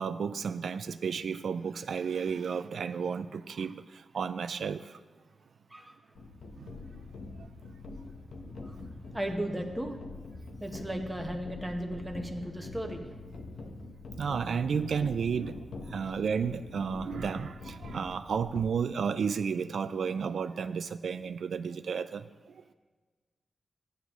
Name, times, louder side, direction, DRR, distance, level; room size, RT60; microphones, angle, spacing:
voice 1, 0.0-5.0 6.6-6.7 14.2-22.6, right 6 dB, 80° right, 11 dB, 0.3 m, -32 dB
sound 1, 6.2-18.6, left 3 dB, 85° left, 1.0 m, -44 dB
voice 2, 9.1-10.0 10.6-13.1, right 1 dB, 10° right, 3 dB, 1.0 m, -35 dB
14.5 x 9.6 x 3.0 m, 1.3 s
wide cardioid pair, 140°, 0 cm